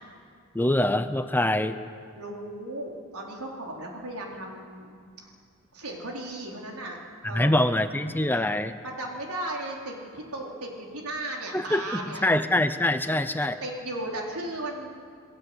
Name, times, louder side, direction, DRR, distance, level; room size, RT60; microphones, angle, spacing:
voice 1, 0.5-1.8 7.3-8.7 11.5-13.6, left 1 dB, 10° left, 9 dB, 0.8 m, -24 dB
voice 2, 2.1-5.3 5.7-7.0 7.2-7.6 8.8-12.3 13.4-14.9, right 1 dB, 85° right, -1 dB, 4.4 m, -36 dB
28.0 x 18.5 x 8.1 m, 2.2 s
head